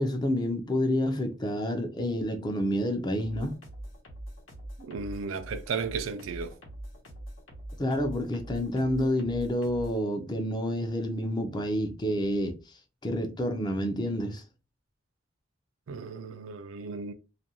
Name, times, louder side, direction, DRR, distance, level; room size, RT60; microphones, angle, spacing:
voice 1, 0.0-3.5 7.8-14.4, left 1 dB, 20° left, 0.4 m, -29 dB
sound 1, 3.2-10.0, right 1 dB, 75° left, 0.9 m, -43 dB
voice 2, 4.8-6.6 15.9-17.1, right 5 dB, 85° right, 0.4 m, -35 dB
2.5 x 2.2 x 2.7 m
head